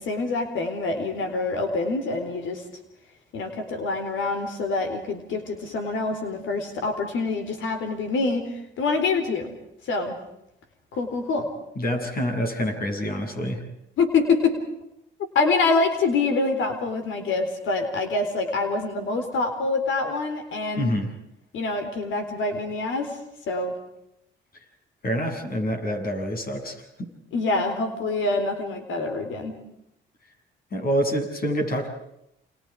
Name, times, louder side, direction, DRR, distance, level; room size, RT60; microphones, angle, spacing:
voice 1, 0.0-2.6 3.3-8.5 8.8-9.5 9.9-10.2 10.9-11.5 14.0-14.6 15.3-20.9 21.5-23.2 23.5-23.7 27.3-29.5, left 3 dB, 75° left, 7 dB, 4.1 m, -25 dB
voice 2, 11.8-13.6 20.8-21.1 25.0-27.1 30.7-31.9, equal, 50° left, 5 dB, 7.6 m, -27 dB
30.0 x 27.5 x 4.9 m, 0.81 s
cardioid pair, 90°, 20 cm